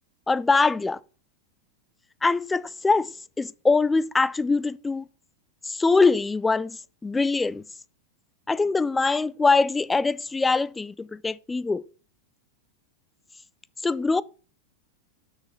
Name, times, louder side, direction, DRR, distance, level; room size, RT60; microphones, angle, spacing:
voice 1, 0.3-1.0 2.2-5.0 5.6-7.6 8.5-11.8 13.8-14.2, left 3 dB, 10° left, 0.3 m, -23 dB
6.4 x 6.0 x 6.6 m
figure-of-eight pair, 90°, 0 cm